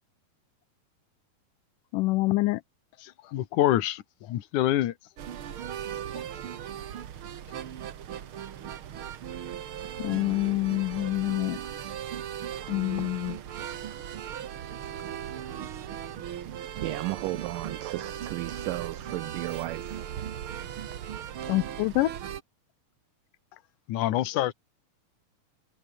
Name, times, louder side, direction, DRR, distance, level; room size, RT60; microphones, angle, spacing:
voice 1, 1.9-2.6 10.0-11.6 12.7-13.4 21.5-22.1, left 20 dB, 85° left, 1.8 m, -26 dB
voice 2, 3.0-4.9 23.9-24.5, left 13 dB, 60° left, 2.4 m, -26 dB
sound 1, 5.2-22.4, right 10 dB, 70° right, 1.2 m, -38 dB
voice 3, 16.8-20.1, right 19 dB, 90° right, 1.9 m, -34 dB
omnidirectional pair, 4.4 m